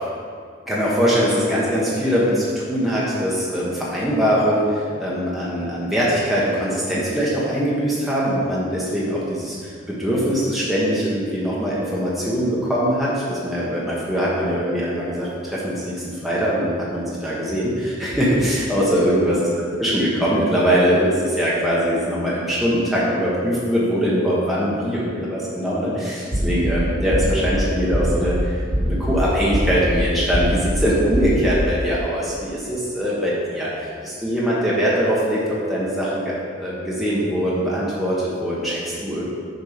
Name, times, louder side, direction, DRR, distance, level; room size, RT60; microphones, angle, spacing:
voice 1, 0.7-19.5 19.8-39.2, equal, ahead, -8 dB, 1.1 m, -22 dB
sound 1, 26.3-26.7 27.1-27.5 27.9-28.3 28.7-29.1 29.5-29.9 30.3-30.7 31.1-31.5, equal, 50° right, 1.2 m, -22 dB
6.8 x 5.4 x 5.0 m, 2.1 s
head